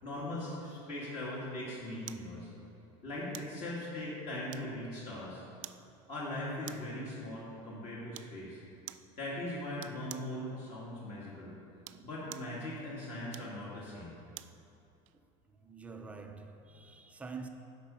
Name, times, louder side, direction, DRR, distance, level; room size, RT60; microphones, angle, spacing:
voice 1, 0.0-2.5 3.0-5.4 6.1-8.6 9.2-11.5 12.0-14.1, left 1 dB, 45° left, 2.1 m, -40 dB
sound 1, 2.1-2.3 3.3-3.6 4.5-4.9 5.6-5.9 6.6-7.0 8.1-8.4 8.9-9.1 9.8-10.3 11.7-12.6 13.3-14.6 15.1-15.2, right 16 dB, 90° right, 0.4 m, -48 dB
voice 2, 15.5-17.5, right 4 dB, 10° right, 0.5 m, -47 dB
10.5 x 5.2 x 6.8 m
cardioid pair, 170°, 16 cm